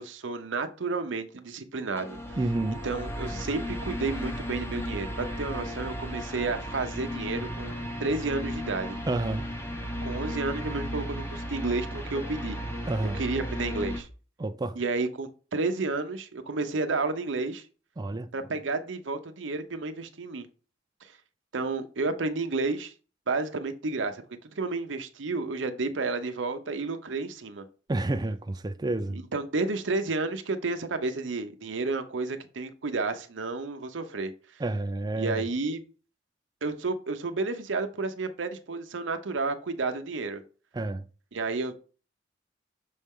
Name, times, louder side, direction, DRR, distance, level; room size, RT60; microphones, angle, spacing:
voice 1, 0.0-2.2 2.8-9.0 10.0-12.6 13.0-14.1 14.8-17.6 18.3-20.5 21.5-22.9 23.3-24.2 24.6-27.6 29.1-34.3 35.2-35.8 36.6-40.4 41.3-41.8, right 3 dB, 80° right, 0.7 m, -31 dB
sound 1, 2.0-14.0, equal, 15° left, 0.9 m, -35 dB
voice 2, 2.4-2.8 9.1-9.5 12.9-13.2 14.4-14.8 18.0-18.3 27.9-29.2 34.6-35.4 40.7-41.1, right 2 dB, 20° right, 0.4 m, -29 dB
6.3 x 4.3 x 3.6 m
head